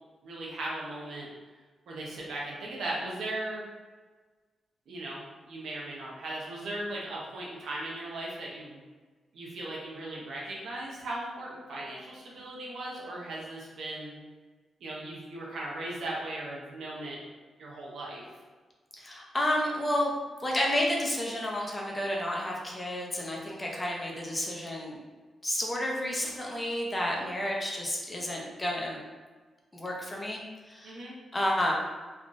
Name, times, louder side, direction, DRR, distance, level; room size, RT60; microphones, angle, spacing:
voice 1, 0.2-1.3 1.9-3.6 4.9-8.8 9.3-14.2 14.8-17.2 17.6-18.2 30.8-31.2, right 1 dB, 80° right, -4 dB, 0.8 m, -38 dB
voice 2, 18.9-20.1 20.4-25.0 25.4-29.0 29.7-30.4 30.7-31.0 31.3-31.7, left 1 dB, 25° left, -2 dB, 0.8 m, -31 dB
3.4 x 2.4 x 2.5 m, 1.4 s
cardioid pair, 65°, 0 cm